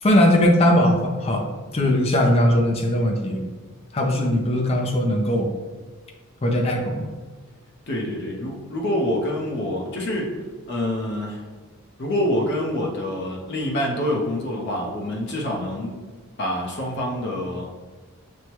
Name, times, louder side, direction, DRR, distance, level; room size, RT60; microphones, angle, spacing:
voice 1, 0.0-1.5 1.7-3.4 3.9-5.5 6.4-7.1, left 1 dB, 25° left, 1 dB, 0.5 m, -19 dB
voice 2, 7.9-10.4 10.7-11.4 12.0-16.0 16.4-17.7, left 1 dB, 50° left, -2 dB, 0.8 m, -26 dB
6.2 x 2.1 x 2.9 m, 1.4 s
head